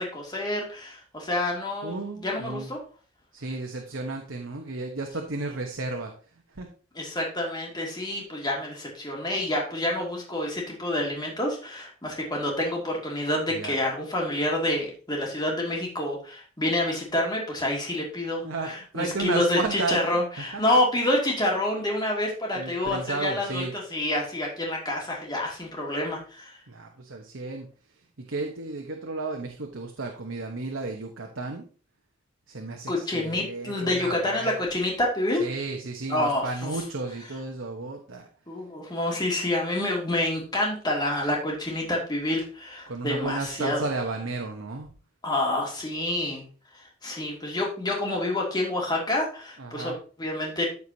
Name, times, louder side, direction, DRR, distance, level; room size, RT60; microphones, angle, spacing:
voice 1, 0.0-2.8 6.9-26.6 32.9-35.5 36.1-36.9 37.2-37.4 38.5-43.9 45.2-46.4 47.0-50.6, left 1 dB, 20° left, -1 dB, 2.4 m, -28 dB
voice 2, 1.8-2.7 3.3-6.1 6.6-6.7 13.5-13.8 18.4-20.8 22.6-23.7 26.7-27.7 28.3-31.6 32.5-34.6 35.4-38.2 42.9-44.9 49.6-50.0, right 3 dB, 75° right, 2 dB, 1.1 m, -33 dB
14.0 x 4.7 x 2.8 m, 0.38 s
head